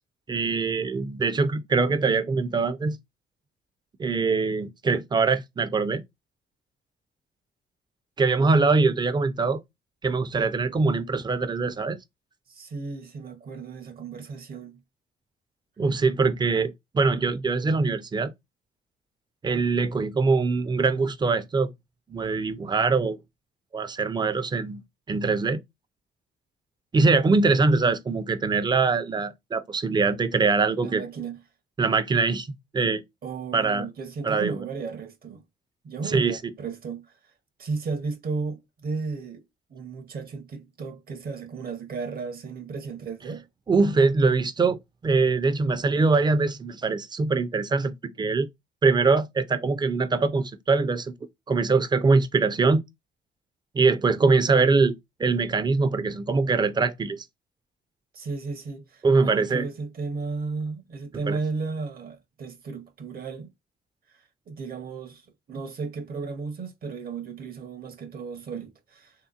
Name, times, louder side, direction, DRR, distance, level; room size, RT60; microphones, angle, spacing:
voice 1, 0.3-3.0 4.0-6.0 8.2-9.6 10.0-12.0 15.8-18.3 19.4-21.7 22.1-23.2 23.7-24.8 25.1-25.6 26.9-31.0 31.8-32.5 32.7-33.0 33.5-33.9 34.2-34.6 36.1-36.4 43.7-48.5 48.8-51.1 51.5-52.8 53.7-57.2 59.0-59.7 61.3-61.4, right 4 dB, 20° right, 0.5 m, -23 dB
voice 2, 12.5-14.8 30.8-31.4 33.2-35.4 35.8-37.3 37.6-39.4 39.7-43.5 58.1-63.5 64.1-65.2 65.5-69.1, right 4 dB, 50° right, 0.8 m, -34 dB
3.4 x 2.8 x 2.3 m
cardioid pair, 90°, 20 cm